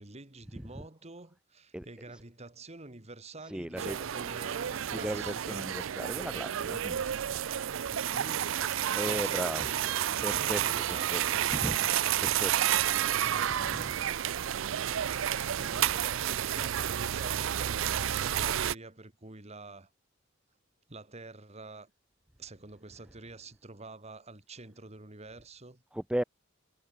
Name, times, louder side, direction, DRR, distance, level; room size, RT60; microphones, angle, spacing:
voice 1, 0.0-5.7 8.0-10.2 10.6-11.9 15.3-19.9 20.9-21.9 22.4-25.8, right 3 dB, 30° right, 2.0 m, -48 dB
voice 2, 3.5-4.0 4.9-7.0 9.0-9.7 10.2-11.2 11.6-11.8 12.2-12.5 13.7-13.8 25.9-26.2, right 1 dB, 5° right, 0.4 m, -35 dB
sound 1, 3.8-18.7, right 10 dB, 65° right, 0.5 m, -30 dB
head